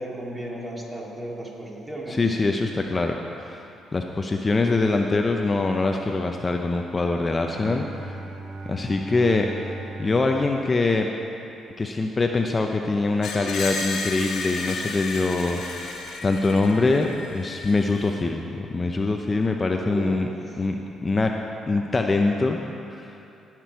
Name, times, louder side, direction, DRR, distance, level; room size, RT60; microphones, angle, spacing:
voice 1, 0.0-2.3 19.9-20.6, right 1 dB, 20° right, -3 dB, 2.3 m, -34 dB
voice 2, 2.1-3.7 3.9-8.2 8.7-9.5 10.0-11.1 11.8-15.9 16.2-20.3 20.6-20.8 21.0-21.3 21.7-22.6 23.0-23.1, left 3 dB, 30° left, 3 dB, 0.6 m, -23 dB
Bowed string instrument, 7.5-11.6, right 2 dB, 45° right, 1.1 m, -38 dB
Screech, 13.2-18.2, left 3 dB, 75° left, 1.3 m, -33 dB
17.0 x 6.0 x 4.6 m, 2.8 s
cardioid pair, 90°, 0 cm